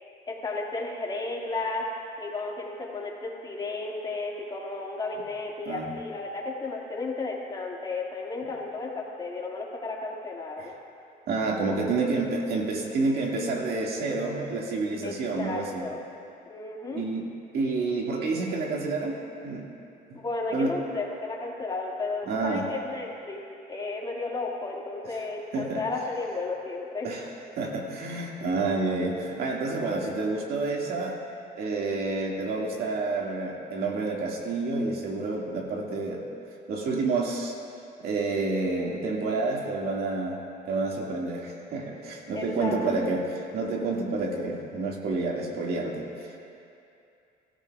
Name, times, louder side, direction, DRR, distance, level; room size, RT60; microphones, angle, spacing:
voice 1, 0.3-1.9 2.2-10.7 15.0-16.0 16.5-17.0 20.1-23.4 23.7-27.1 28.4-28.5 42.3-42.8 43.8-43.9, left 3 dB, 25° left, -2 dB, 2.1 m, -33 dB
voice 2, 11.3-15.9 16.9-17.3 17.5-19.7 20.1-20.2 20.5-20.7 22.3-22.7 25.5-25.8 27.0-27.3 27.6-31.2 31.6-36.3 36.7-37.6 38.0-40.4 40.7-46.4, right 3 dB, 70° right, -1 dB, 2.0 m, -29 dB
22.5 x 14.0 x 2.4 m, 2.6 s
cardioid pair, 110°, 17 cm